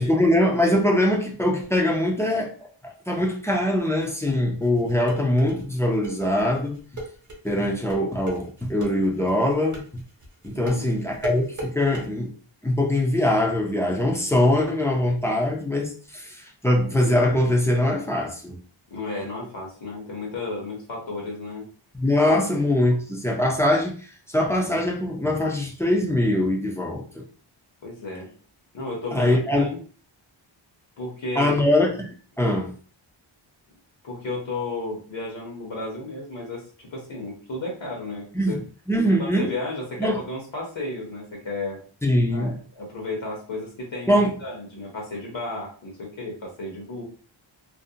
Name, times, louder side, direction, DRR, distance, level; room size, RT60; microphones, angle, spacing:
voice 1, 0.0-2.5 2.8-6.8 7.4-10.0 10.4-12.3 12.6-18.6 21.9-27.2 29.1-29.7 31.4-32.7 38.3-38.6 38.9-39.5 40.0-40.2 42.0-42.6 44.1-44.3, left 1 dB, 5° left, 0.3 m, -22 dB
sound 1, 4.6-12.1, right 2 dB, 40° right, 0.8 m, -36 dB
voice 2, 10.5-10.9 18.9-21.7 27.8-28.3 28.7-29.8 31.0-31.6 34.0-38.6 39.2-41.8 42.3-47.0, left 2 dB, 70° left, 0.9 m, -33 dB
2.5 x 2.1 x 2.6 m
wide cardioid pair, 135°, 47 cm